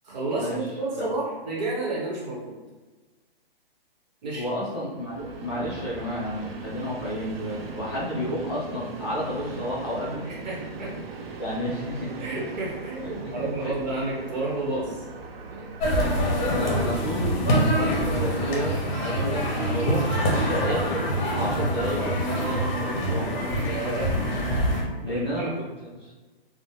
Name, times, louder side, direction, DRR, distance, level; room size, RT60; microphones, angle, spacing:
voice 1, 0.0-2.6 4.2-4.4 10.2-10.9 12.2-15.0 15.5-15.7 23.6-24.1 25.0-25.5, right 2 dB, 45° right, -4 dB, 0.9 m, -31 dB
voice 2, 4.3-10.3 11.4-12.3 13.0-13.7 16.4-20.1 20.5-23.4 25.0-25.5 25.9-26.1, equal, 25° left, -8 dB, 0.4 m, -31 dB
Train, 4.9-23.0, right 3 dB, 75° right, 0.5 m, -40 dB
sound 1, 15.8-24.8, equal, 50° left, 0.8 m, -25 dB
2.7 x 2.0 x 3.1 m, 1.3 s
hypercardioid pair, 165°, 30 cm